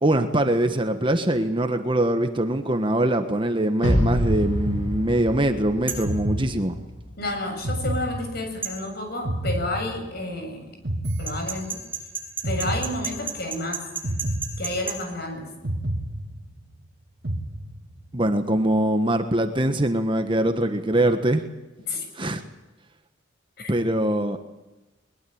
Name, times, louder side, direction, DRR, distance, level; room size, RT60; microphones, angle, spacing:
voice 1, 0.0-6.8 18.1-21.4 22.2-22.4 23.7-24.4, right 1 dB, 25° right, 7 dB, 1.4 m, -23 dB
sound 1, 3.8-7.1, equal, 80° left, 8.0 m, -26 dB
sound 2, 4.6-5.5 6.0-7.1 7.6-8.8 9.2-10.4 10.8-12.0 12.4-13.5 14.0-15.2 15.6-16.8 17.2-18.1, right 1 dB, 60° right, 2.7 m, -30 dB
sound 3, 5.9-6.1 8.6-8.8 11.3-15.0, right 5 dB, 10° right, 7.4 m, -31 dB
voice 2, 7.2-10.7 11.2-11.8 12.4-13.8 14.6-15.5 21.9-22.0 23.6-23.7, left 2 dB, 55° left, 5 dB, 7.3 m, -30 dB
22.5 x 21.5 x 8.8 m, 1.1 s
head